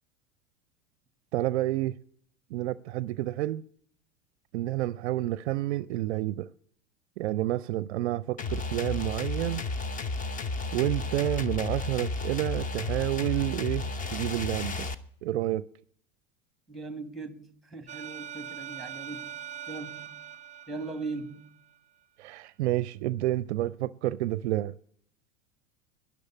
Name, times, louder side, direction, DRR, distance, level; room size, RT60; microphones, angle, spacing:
voice 1, 1.3-2.0 2.5-3.6 4.5-6.5 7.2-9.6 10.7-14.9 15.2-15.7 22.2-24.8, right 15 dB, 60° right, 0.5 m, -29 dB
sound 1, 8.4-14.9, left 3 dB, 20° left, 0.9 m, -33 dB
voice 2, 16.7-19.3 19.7-20.2 20.7-21.5, right 3 dB, ahead, 1.6 m, -39 dB
sound 2, 17.9-21.8, right 11 dB, 20° right, 0.9 m, -42 dB
13.0 x 10.5 x 9.8 m
figure-of-eight pair, 85°, 39 cm